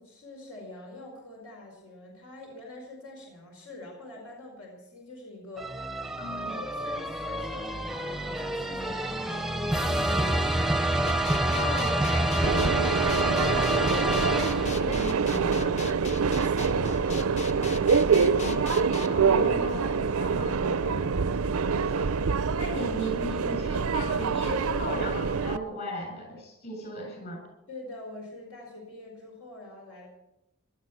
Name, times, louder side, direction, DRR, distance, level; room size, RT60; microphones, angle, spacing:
voice 1, 0.0-5.9 6.5-10.8 16.3-17.3 17.7-18.5 27.7-30.1, left 2 dB, 85° left, -1 dB, 5.0 m, -45 dB
sound 1, 5.6-15.1, right 1 dB, ahead, 0.7 m, -28 dB
voice 2, 6.2-6.6 11.5-15.8 18.3-21.1 21.5-22.1 22.6-27.4, left 1 dB, 50° left, 2 dB, 7.6 m, -37 dB
sound 2, 11.1-19.1, left 3 dB, 35° left, 0.8 m, -38 dB
Subway metro underground, 12.4-25.6, right 5 dB, 80° right, 0.6 m, -26 dB
18.0 x 12.5 x 6.0 m, 0.89 s
head